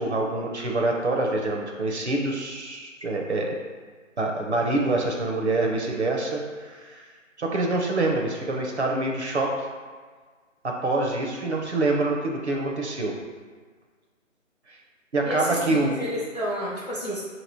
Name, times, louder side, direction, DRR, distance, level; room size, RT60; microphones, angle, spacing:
voice 1, 0.0-3.5 4.2-7.0 7.4-9.7 10.6-13.2 14.7-14.8 15.1-16.0, right 2 dB, 60° right, 0 dB, 0.7 m, -26 dB
voice 2, 15.2-17.2, equal, 30° left, -6 dB, 0.6 m, -31 dB
3.0 x 2.9 x 4.3 m, 1.5 s
hypercardioid pair, 180°, 39 cm